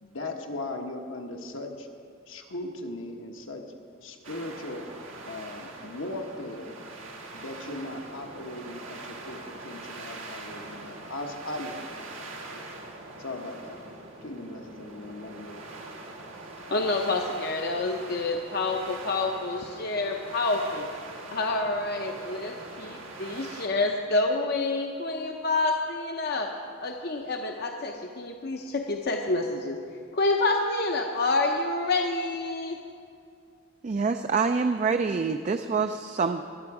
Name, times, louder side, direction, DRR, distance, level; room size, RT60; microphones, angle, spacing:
voice 1, 0.0-1.9 2.3-3.6 4.0-4.9 5.3-6.8 7.3-12.6 13.2-13.8 14.2-15.7, left 2 dB, 75° left, 3 dB, 1.2 m, -38 dB
CP Whipping Wind Storm Thin, 4.2-23.7, right 2 dB, 90° right, 1.6 m, -43 dB
voice 2, 16.7-20.9 21.3-26.5 26.8-29.8 30.1-32.8, left 2 dB, 50° left, 3 dB, 0.7 m, -28 dB
voice 3, 33.8-36.4, right 4 dB, 35° right, 7 dB, 0.3 m, -26 dB
21.0 x 7.9 x 4.8 m, 2.2 s
head